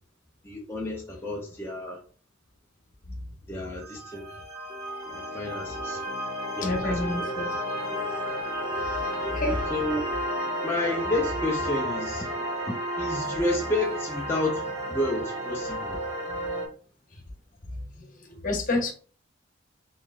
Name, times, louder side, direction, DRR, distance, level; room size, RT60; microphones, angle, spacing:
voice 1, 0.4-2.0 3.5-4.3 5.1-6.0 6.6-7.5 9.7-10.0 10.6-12.4 13.0-16.0, left 2 dB, 10° left, 0.7 m, -31 dB
sound 1, 3.8-16.7, equal, 20° right, 1.4 m, -32 dB
voice 2, 6.6-7.5 8.7-8.9 9.2-9.7 18.0-18.9, left 2 dB, 45° left, 1.1 m, -29 dB
4.4 x 4.0 x 2.4 m
head